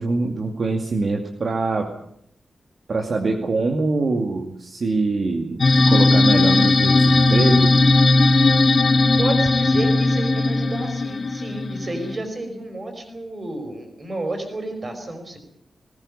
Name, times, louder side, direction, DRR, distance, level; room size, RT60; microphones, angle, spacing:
voice 1, 0.0-1.9 2.9-7.7, right 3 dB, 45° right, 2 dB, 2.4 m, -24 dB
sound 1, 5.6-12.2, left 2 dB, 40° left, 1.8 m, -17 dB
voice 2, 9.2-15.4, right 2 dB, 30° right, 6 dB, 5.2 m, -30 dB
20.0 x 19.0 x 8.6 m, 0.72 s
wide cardioid pair, 175°, 0 cm